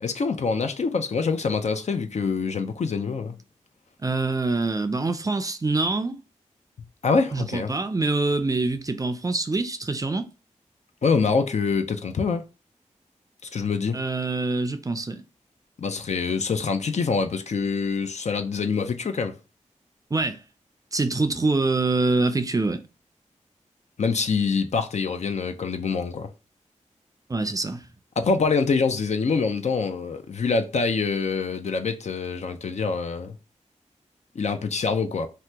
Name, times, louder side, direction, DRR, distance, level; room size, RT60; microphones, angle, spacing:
voice 1, 0.0-3.4 7.0-7.7 11.0-12.4 13.5-14.0 15.8-19.4 24.0-26.3 28.2-33.3 34.4-35.3, left 4 dB, 60° left, 0.5 m, -25 dB
voice 2, 4.0-6.2 7.3-10.3 13.9-15.2 20.1-20.4 20.9-22.8 27.3-27.9, right 3 dB, 25° right, 0.4 m, -25 dB
2.8 x 2.1 x 3.4 m
cardioid pair, 50°, 13 cm